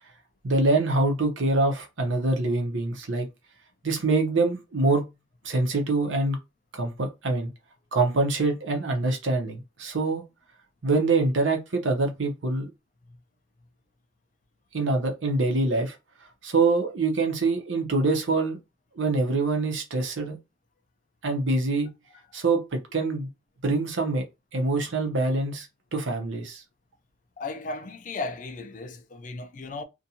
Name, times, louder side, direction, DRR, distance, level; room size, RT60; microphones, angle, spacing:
voice 1, 0.4-3.3 3.8-5.0 5.4-6.4 6.7-7.5 7.9-10.2 10.8-12.7 14.7-16.0 16.4-18.6 18.9-20.4 21.2-21.9 22.3-23.3 23.6-24.2 24.5-25.7 25.9-26.6, right 3 dB, 90° right, 0.8 m, -25 dB
voice 2, 27.4-29.8, left 3 dB, 40° left, 0.3 m, -35 dB
2.5 x 2.2 x 2.7 m
head